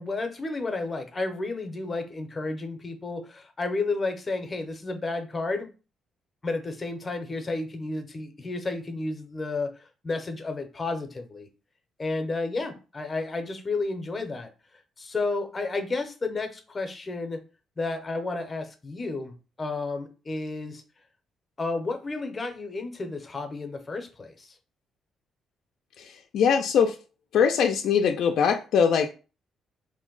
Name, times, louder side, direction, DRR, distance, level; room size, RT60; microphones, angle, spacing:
voice 1, 0.0-5.7 6.4-11.5 12.0-14.5 15.0-17.4 17.8-20.8 21.6-24.6, left 3 dB, 30° left, 0.6 m, -32 dB
voice 2, 26.0-27.0 27.3-29.1, left 7 dB, 75° left, 0.3 m, -22 dB
2.6 x 2.1 x 3.8 m
cardioid pair, 90°, 0 cm